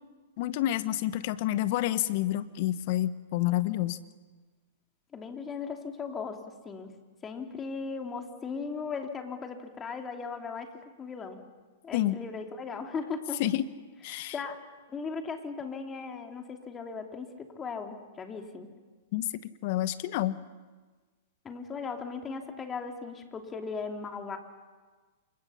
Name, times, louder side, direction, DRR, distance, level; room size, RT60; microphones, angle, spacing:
voice 1, 0.4-4.0 11.9-12.2 13.4-13.6 14.0-14.3 19.1-19.2 19.6-20.4, left 14 dB, 50° left, 14 dB, 1.1 m, -28 dB
voice 2, 5.1-6.9 7.2-10.7 11.0-11.4 11.8-13.4 14.3-14.6 14.9-18.7 21.4-24.4, left 5 dB, 20° left, 4 dB, 3.0 m, -37 dB
28.0 x 25.0 x 5.8 m, 1.4 s
hypercardioid pair, 110°, 0 cm